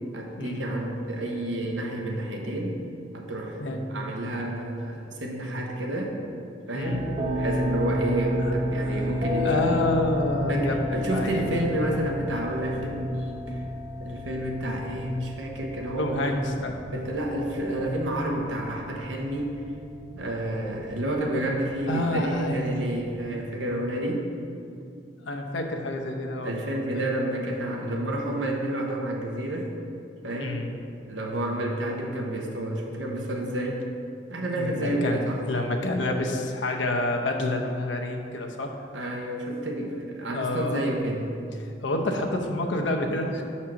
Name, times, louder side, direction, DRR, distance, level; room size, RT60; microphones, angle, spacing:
voice 1, 0.1-2.8 3.1-3.6 3.9-6.1 6.7-9.7 10.5-13.6 14.0-16.4 16.9-19.5 20.1-24.3 26.4-29.7 30.2-30.6 31.1-33.8 34.3-35.4 38.9-41.3, right 1 dB, 80° right, 0 dB, 1.0 m, -30 dB
sound 1, 6.8-23.3, left 1 dB, 40° right, 0.7 m, -32 dB
voice 2, 9.4-11.7 16.0-16.7 21.9-22.7 25.2-27.1 30.4-30.7 34.6-38.7 40.3-40.9 41.6-43.4, left 1 dB, 80° left, 3 dB, 0.7 m, -28 dB
6.3 x 4.3 x 5.7 m, 2.6 s
head